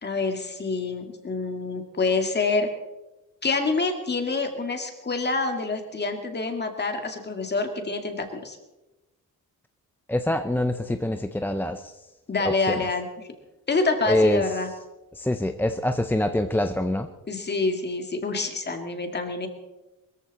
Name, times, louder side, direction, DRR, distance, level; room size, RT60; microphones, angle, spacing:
voice 1, 0.0-2.7 3.4-8.6 12.3-13.3 13.7-14.7 17.3-19.5, left 3 dB, 30° left, 5 dB, 2.2 m, -27 dB
voice 2, 10.1-11.9 12.4-12.9 14.1-14.4 15.1-17.1, left 1 dB, 5° left, 7 dB, 0.5 m, -25 dB
22.0 x 14.5 x 4.2 m, 1.0 s
wide cardioid pair, 140°, 34 cm